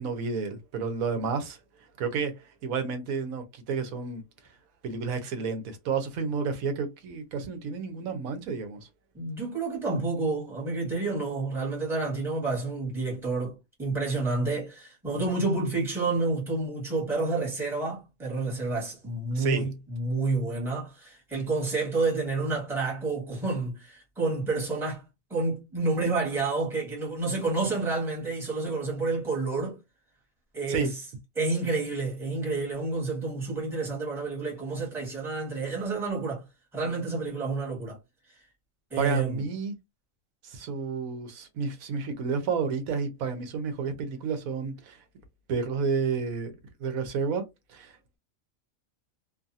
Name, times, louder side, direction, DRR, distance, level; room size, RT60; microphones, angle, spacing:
voice 1, 0.0-1.6 2.0-4.2 4.8-8.9 19.3-19.6 30.7-30.9 39.0-39.7 40.4-45.0 45.5-46.5 46.8-47.4 47.7-47.9, right 5 dB, 90° right, 1.1 m, -30 dB
voice 2, 9.1-25.0 25.3-29.8 30.5-30.9 31.4-36.4 36.7-38.0 38.9-39.4, right 3 dB, ahead, 1.2 m, -29 dB
2.6 x 2.5 x 2.6 m
omnidirectional pair, 1.4 m